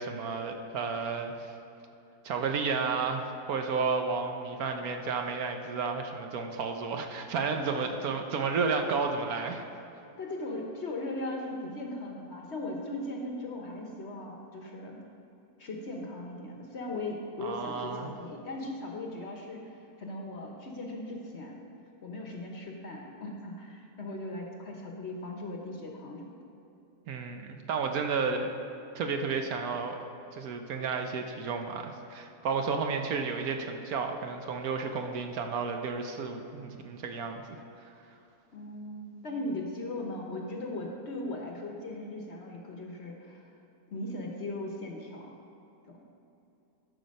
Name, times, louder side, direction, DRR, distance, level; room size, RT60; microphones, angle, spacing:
voice 1, 0.0-1.5 2.2-9.6 17.4-18.1 27.1-28.5 28.9-30.0 30.3-37.9, right 5 dB, 65° right, 4 dB, 1.1 m, -32 dB
voice 2, 10.2-15.0 15.6-21.6 22.0-26.4 38.5-43.5 43.9-45.4 45.9-46.0, left 1 dB, 50° left, 1 dB, 1.1 m, -38 dB
12.5 x 6.0 x 5.3 m, 2.9 s
omnidirectional pair, 1.8 m